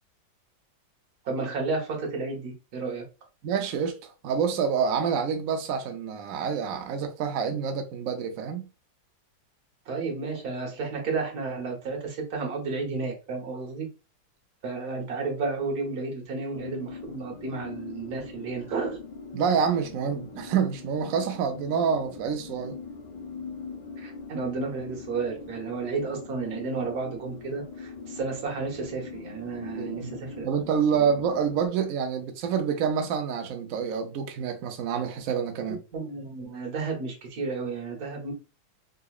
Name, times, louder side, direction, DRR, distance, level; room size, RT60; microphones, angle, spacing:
voice 1, 1.2-3.0 9.9-13.9 14.6-19.0 24.0-30.5 30.9-31.1 35.9-38.3, right 4 dB, 60° right, 1.5 m, -32 dB
voice 2, 3.4-8.7 19.3-22.8 29.8-30.1 30.4-35.8, right 7 dB, 80° right, 0.7 m, -27 dB
sound 1, 16.5-31.7, left 4 dB, 70° left, 1.4 m, -42 dB
3.8 x 2.9 x 2.3 m
omnidirectional pair, 2.1 m